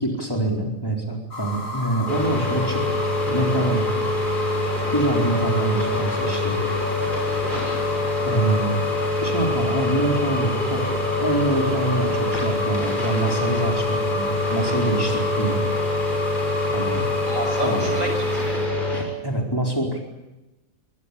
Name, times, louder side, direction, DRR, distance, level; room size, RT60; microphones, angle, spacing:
voice 1, 0.0-3.0 3.3-3.8 4.9-6.6 8.3-8.8 9.2-15.6 16.7-17.0 17.6-18.0 18.9-20.0, right 1 dB, 15° left, 0 dB, 4.5 m, -25 dB
sound 1, 1.3-18.6, left 2 dB, 70° left, 7.0 m, -33 dB
sound 2, 2.1-19.0, left 2 dB, 35° left, 6.8 m, -25 dB
voice 2, 7.5-7.9 17.3-18.7, right 1 dB, 70° right, 3 dB, 6.9 m, -30 dB
24.0 x 19.0 x 8.6 m, 1.0 s
omnidirectional pair, 1.4 m